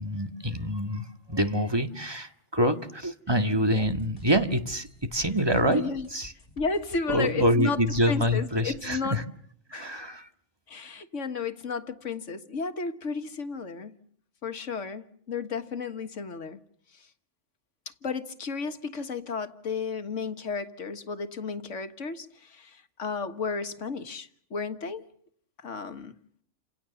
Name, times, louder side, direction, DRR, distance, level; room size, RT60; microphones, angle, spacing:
voice 1, 0.0-5.8 6.1-6.3 7.1-9.2 9.7-10.3, equal, 20° right, 1.8 m, -26 dB
sound 1, 3.8-8.9, left 2 dB, 50° left, 3.7 m, -48 dB
voice 2, 5.6-6.1 6.6-7.8 8.1-9.2 9.7-10.0 10.7-14.0 14.4-16.6 18.0-25.1 25.6-26.1, left 4 dB, 90° left, 1.9 m, -33 dB
29.5 x 27.0 x 7.1 m
omnidirectional pair, 1.2 m